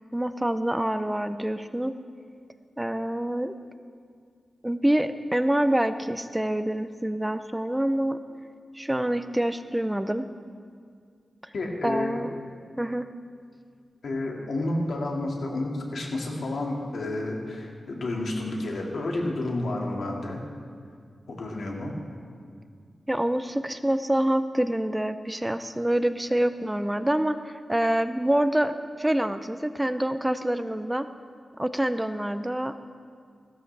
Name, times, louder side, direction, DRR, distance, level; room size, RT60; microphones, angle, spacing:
voice 1, 0.0-1.9 2.8-3.6 4.6-8.2 8.7-10.3 11.4-11.5 11.8-12.3 12.8-13.1 23.1-31.1 31.6-32.8, right 1 dB, 10° right, 11 dB, 0.5 m, -26 dB
voice 2, 11.5-12.2 14.0-20.4 21.3-21.9, left 2 dB, 85° left, -1 dB, 2.0 m, -30 dB
16.0 x 12.5 x 3.3 m, 2.1 s
cardioid pair, 70°, 0 cm